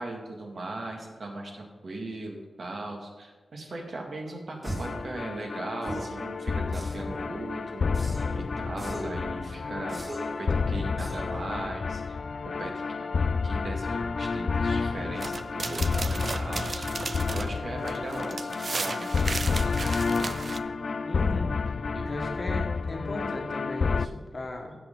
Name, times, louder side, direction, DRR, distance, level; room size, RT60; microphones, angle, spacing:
voice 1, 0.0-8.1 8.3-10.0 10.4-12.2 12.6-16.9 17.3-20.4 21.9-22.1, right 2 dB, 55° right, 1 dB, 1.9 m, -38 dB
sound 1, 4.6-5.0 5.8-6.2 6.7-7.2 7.9-8.4 8.8-9.2 9.9-10.4 11.0-11.4, right 1 dB, 20° right, 2.1 m, -38 dB
sound 2, 4.7-24.1, left 4 dB, 60° left, 0.3 m, -30 dB
sound 3, 15.2-20.6, right 3 dB, 40° right, 0.4 m, -35 dB
voice 2, 21.0-21.5 22.0-24.7, left 1 dB, 35° left, 2 dB, 1.5 m, -36 dB
15.5 x 6.6 x 3.8 m, 1.3 s
wide cardioid pair, 135°, 0 cm